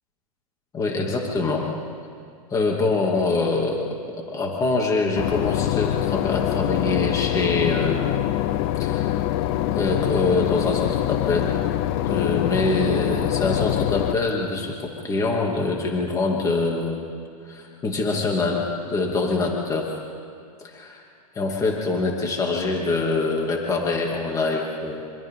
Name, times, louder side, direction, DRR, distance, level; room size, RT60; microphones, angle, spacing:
voice 1, 0.7-1.7 2.5-3.9 4.3-8.1 8.8-9.2 9.7-11.5 12.0-17.0 17.5-19.9 20.6-21.0 21.3-25.1, left 3 dB, 15° left, -1 dB, 2.7 m, -24 dB
Boat Water vehicle / Engine, 5.2-14.1, left 13 dB, 45° left, 0.9 m, -24 dB
26.5 x 25.5 x 3.9 m, 2.4 s
hypercardioid pair, 140°, 20 cm